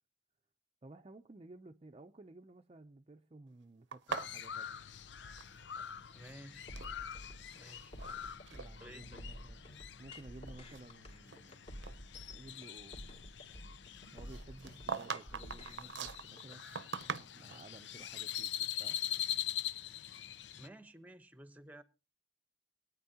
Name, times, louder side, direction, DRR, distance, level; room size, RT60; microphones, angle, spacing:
voice 1, 0.8-4.8 8.5-9.6 10.0-11.7 12.3-13.1 14.1-16.6 17.3-19.0, right 2 dB, 30° right, 0.5 m, -55 dB
sound 1, 3.9-5.9 6.2-6.9 7.6-8.1 8.5-8.7 9.3-9.4 10.0-11.5 11.8-12.0 14.3-17.7, right 6 dB, 85° right, 0.7 m, -43 dB
Crow, 4.1-20.7, left 10 dB, 85° left, 0.6 m, -44 dB
voice 2, 6.1-6.7 7.5-7.9 8.8-9.2 20.5-21.8, right 1 dB, 10° right, 0.9 m, -53 dB
sound 2, 6.7-16.6, equal, 35° left, 2.9 m, -50 dB
22.0 x 9.5 x 2.8 m
head